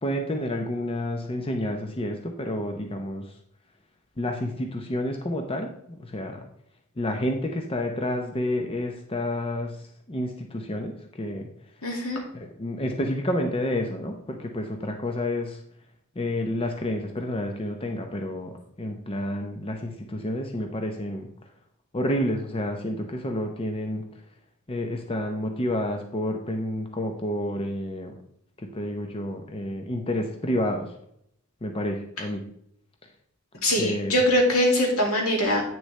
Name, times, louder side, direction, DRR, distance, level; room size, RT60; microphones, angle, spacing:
voice 1, 0.0-3.4 4.2-6.5 7.0-11.5 12.3-15.6 16.2-21.3 21.9-24.0 24.7-28.1 28.6-31.0 31.6-32.4 33.8-34.2, left 1 dB, 25° left, 4 dB, 0.7 m, -29 dB
voice 2, 11.8-12.2 33.6-35.6, equal, 80° left, 0 dB, 2.2 m, -22 dB
8.6 x 6.4 x 3.2 m, 0.72 s
head